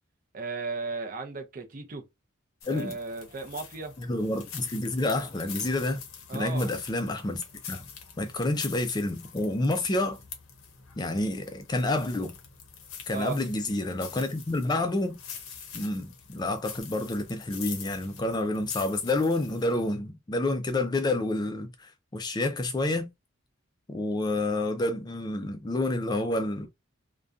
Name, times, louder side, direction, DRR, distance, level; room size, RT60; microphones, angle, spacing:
voice 1, 0.3-2.0 2.7-3.9 6.3-6.7 13.1-13.4, right 4 dB, 40° right, 0.5 m, -35 dB
sound 1, 2.6-19.9, left 7 dB, 85° left, 0.7 m, -45 dB
voice 2, 4.0-6.0 6.3-7.4 7.7-7.8 8.2-10.2 11.0-12.3 13.1-15.2 15.7-23.1 23.9-26.7, left 2 dB, 20° left, 0.3 m, -29 dB
2.5 x 2.2 x 2.3 m
head